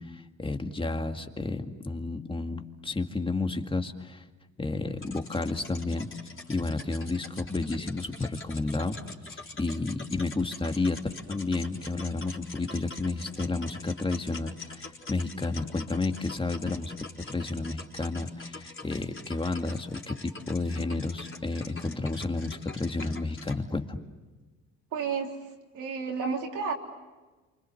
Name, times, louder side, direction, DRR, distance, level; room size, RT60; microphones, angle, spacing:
voice 1, 0.1-4.2 4.6-6.1 6.5-9.0 9.3-11.0 11.3-16.9 17.3-24.0, left 3 dB, 15° left, 5 dB, 2.0 m, -31 dB
sound 1, 5.0-23.6, left 3 dB, 40° left, 3.9 m, -45 dB
voice 2, 24.9-25.3 25.7-26.7, right 5 dB, 85° right, 1 dB, 3.5 m, -31 dB
28.5 x 25.0 x 7.8 m, 1.2 s
cardioid pair, 90°, 30 cm